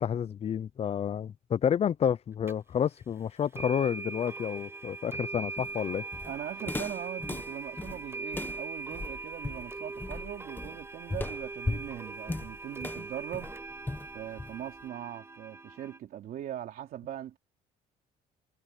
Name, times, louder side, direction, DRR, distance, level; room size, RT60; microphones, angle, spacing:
voice 1, 0.0-6.0, left 8 dB, 35° left, 0.6 m, -30 dB
sound 1, 2.5-2.6 3.5-16.0, right 3 dB, 15° right, 0.6 m, -41 dB
Walk footsteps, 5.6-14.8, left 2 dB, 10° left, 1.2 m, -38 dB
voice 2, 6.2-13.5 14.1-17.4, right 11 dB, 65° right, 2.9 m, -40 dB
cardioid pair, 110°, 17 cm